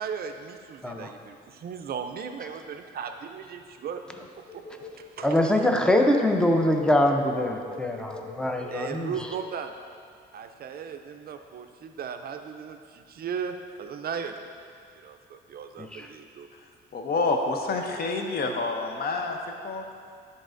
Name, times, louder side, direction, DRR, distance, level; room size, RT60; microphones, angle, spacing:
voice 1, 0.0-4.0 5.0-5.4 8.5-9.7 10.3-14.4 15.0-16.5, right 7 dB, 50° right, 6 dB, 0.4 m, -37 dB
Telephone, 4.5-9.7, left 5 dB, 85° left, 1.2 m, -42 dB
voice 2, 5.2-9.3 15.8-16.1, left 1 dB, 5° left, 3 dB, 0.5 m, -24 dB
voice 3, 16.9-19.4 19.6-19.8, left 3 dB, 50° left, 3 dB, 0.7 m, -28 dB
10.0 x 4.0 x 2.5 m, 2.2 s
cardioid pair, 90°, 20 cm